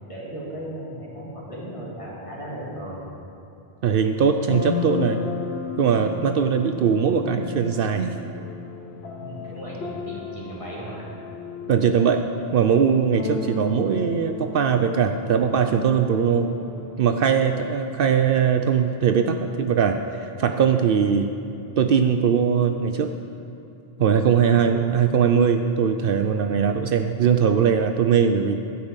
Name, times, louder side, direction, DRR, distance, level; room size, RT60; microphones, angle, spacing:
voice 1, 0.1-3.1 9.1-11.1 24.6-24.8, equal, 30° left, -7 dB, 2.9 m, -36 dB
voice 2, 3.8-5.2 5.8-8.1 11.7-12.2 12.5-16.5 17.0-20.0 20.4-21.3 21.8-23.1 24.0-28.6, right 7 dB, 65° right, 6 dB, 0.7 m, -20 dB
sound 1, 4.4-17.0, left 5 dB, 85° left, 1.2 m, -34 dB
12.0 x 5.7 x 8.1 m, 2.7 s
omnidirectional pair, 1.0 m